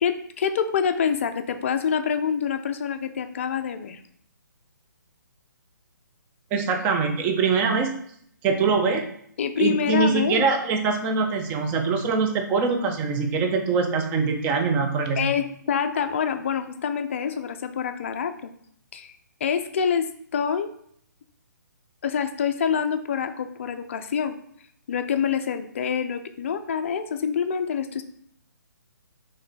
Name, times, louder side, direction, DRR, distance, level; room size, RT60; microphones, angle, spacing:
voice 1, 0.0-4.0 9.4-10.5 15.2-18.5 18.9-19.1 19.4-20.7 22.0-24.3 24.9-28.0, left 7 dB, 40° left, 8 dB, 0.4 m, -26 dB
voice 2, 6.5-7.9 8.4-9.0 9.6-15.2, right 4 dB, 15° right, 4 dB, 0.5 m, -23 dB
4.4 x 3.2 x 3.8 m, 0.65 s
figure-of-eight pair, 135°, 11 cm